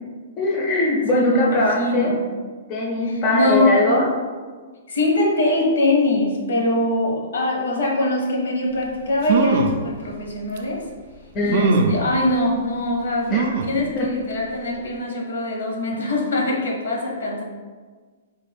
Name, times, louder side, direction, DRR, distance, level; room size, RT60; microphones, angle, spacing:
voice 1, 0.4-2.1 2.7-4.1 11.3-11.9 13.3-13.4 14.0-14.1, left 1 dB, 20° left, -2 dB, 0.4 m, -20 dB
voice 2, 1.1-2.2 3.0-3.8 4.9-10.8 11.4-17.4, left 2 dB, 85° left, 0 dB, 0.8 m, -22 dB
sound 1, 8.8-8.9 9.2-9.8 10.6-10.7 11.5-12.0 13.3-13.8 14.3-14.4 14.7-14.8, right 5 dB, 45° right, 0.3 m, -21 dB
3.4 x 2.3 x 3.4 m, 1.5 s
hypercardioid pair, 165°, 0 cm